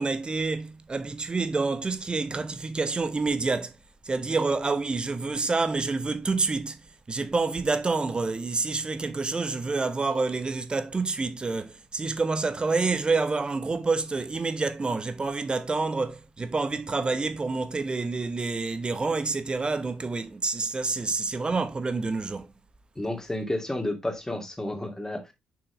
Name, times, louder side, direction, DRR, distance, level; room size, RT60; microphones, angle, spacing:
voice 1, 0.0-3.7 4.0-22.5, right 3 dB, 25° right, 1.0 m, -28 dB
voice 2, 23.0-25.3, left 1 dB, 15° left, 2.2 m, -31 dB
6.2 x 6.1 x 3.2 m
figure-of-eight pair, 40°, 4 cm